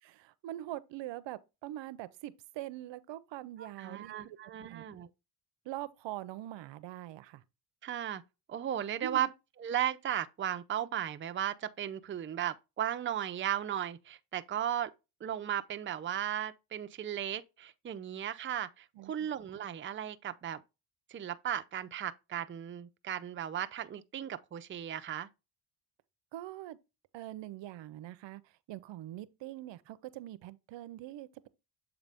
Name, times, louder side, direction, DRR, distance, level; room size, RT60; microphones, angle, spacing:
voice 1, 0.0-4.9 5.6-7.4 9.0-9.3 19.0-19.3 26.3-26.8 27.1-28.4 28.7-31.5, right 14 dB, 70° right, 0.6 m, -43 dB
voice 2, 3.6-5.1 7.8-8.2 8.5-9.3 9.6-14.9 15.2-20.6 21.1-25.3, right 10 dB, 25° right, 0.5 m, -36 dB
7.4 x 3.9 x 3.4 m
cardioid pair, 80°, 46 cm